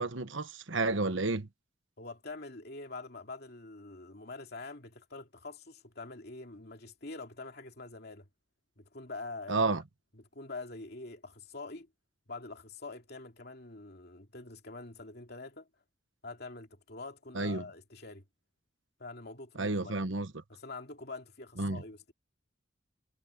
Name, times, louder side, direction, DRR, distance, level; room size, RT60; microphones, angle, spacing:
voice 1, 0.0-1.5 9.5-9.8 17.3-17.6 19.6-20.3 21.6-21.8, right 3 dB, 75° right, 1.2 m, -31 dB
voice 2, 2.0-8.3 8.8-9.7 10.1-11.9 12.3-15.7 16.2-18.2 19.0-20.0 20.5-22.1, left 3 dB, 55° left, 2.6 m, -45 dB
head